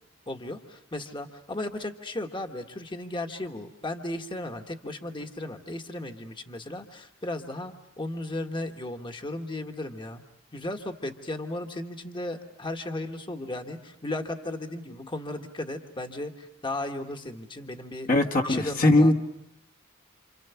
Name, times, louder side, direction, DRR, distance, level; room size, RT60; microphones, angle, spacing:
voice 1, 0.3-10.2 10.5-18.1 18.4-19.1, left 1 dB, 25° left, 5 dB, 1.5 m, -35 dB
voice 2, 18.1-19.1, left 2 dB, 45° left, 1 dB, 1.5 m, -20 dB
28.5 x 28.0 x 7.0 m, 0.78 s
head